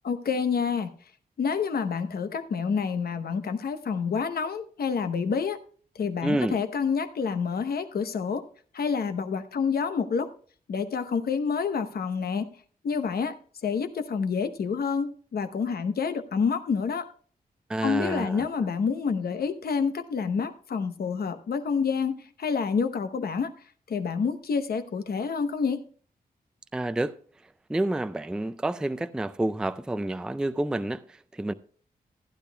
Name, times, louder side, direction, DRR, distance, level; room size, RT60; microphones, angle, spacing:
voice 1, 0.0-0.9 1.4-5.6 6.0-8.4 8.7-10.3 10.7-12.5 12.8-13.4 13.6-17.1 17.8-23.5 23.9-25.8, left 5 dB, 75° left, 0.9 m, -28 dB
voice 2, 6.2-6.6 17.7-18.5 26.7-27.2 27.7-31.5, right 1 dB, 5° right, 0.3 m, -29 dB
15.0 x 10.0 x 2.2 m
wide cardioid pair, 150°, 16 cm